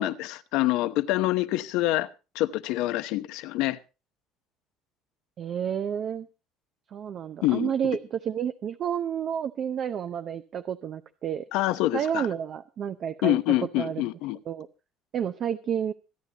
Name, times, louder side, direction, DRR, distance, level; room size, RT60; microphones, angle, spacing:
voice 1, 0.0-2.1 2.3-3.8 7.4-7.7 11.5-12.3 13.2-14.4, left 16 dB, 80° left, 0.9 m, -26 dB
voice 2, 5.4-6.3 6.9-11.5 11.9-13.4 13.8-14.0 14.5-14.7 15.1-15.9, right 8 dB, 40° right, 0.6 m, -30 dB
25.5 x 9.9 x 2.9 m
cardioid pair, 155°, 0 cm